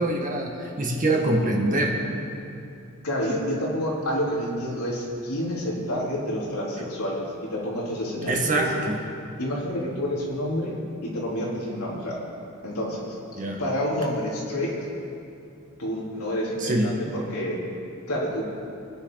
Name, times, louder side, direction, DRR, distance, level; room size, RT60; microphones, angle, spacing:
voice 1, 0.0-2.0 8.3-9.0 13.4-13.6 16.6-16.9, right 2 dB, 35° right, 0 dB, 1.9 m, -24 dB
voice 2, 3.0-8.7 9.4-10.8 11.0-12.2 12.6-13.2 13.6-14.7 15.8-17.6 18.1-18.4, equal, 80° left, -5 dB, 3.9 m, -28 dB
24.5 x 10.5 x 4.1 m, 2.6 s
head